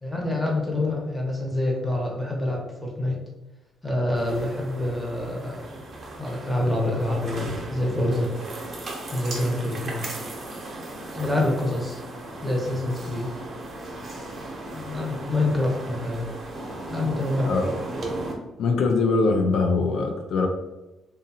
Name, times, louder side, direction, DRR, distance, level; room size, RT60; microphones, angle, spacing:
voice 1, 0.0-3.2 3.8-5.8 6.2-8.3 9.1-10.0 11.1-12.0 12.4-13.3 14.7-16.2 16.9-17.5, left 1 dB, 5° left, -2 dB, 0.9 m, -26 dB
sound 1, 4.1-18.3, right 2 dB, 50° right, 0.7 m, -36 dB
voice 2, 18.6-20.5, left 3 dB, 75° left, 3 dB, 0.4 m, -22 dB
2.7 x 2.3 x 2.7 m, 1.0 s
cardioid pair, 90°, 0 cm